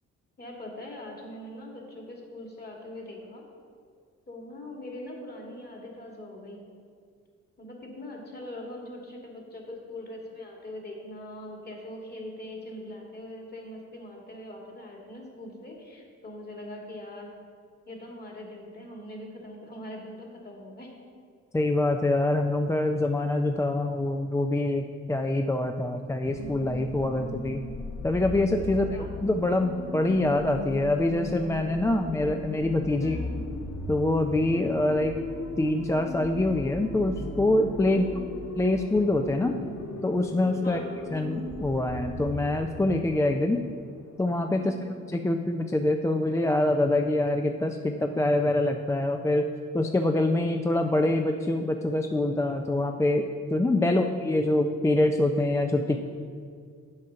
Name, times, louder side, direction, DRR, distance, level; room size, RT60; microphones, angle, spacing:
voice 1, 0.4-3.5 4.3-6.6 7.6-17.3 17.9-20.9 28.7-29.1 29.6-29.7 33.0-33.4 37.9-38.4 40.6-41.0 44.6-45.0 53.8-54.2 55.8-56.0, left 1 dB, 30° left, -1 dB, 2.3 m, -42 dB
voice 2, 21.5-27.6 28.0-28.9 29.2-33.2 33.9-35.2 35.6-38.0 38.6-39.6 40.0-40.8 41.1-43.6 44.2-44.8 45.1-56.0, left 2 dB, 10° left, 5 dB, 0.4 m, -25 dB
sound 1, 26.2-44.5, left 1 dB, 60° left, 1.6 m, -37 dB
7.4 x 6.4 x 5.7 m, 2.2 s
cardioid pair, 90°, 30 cm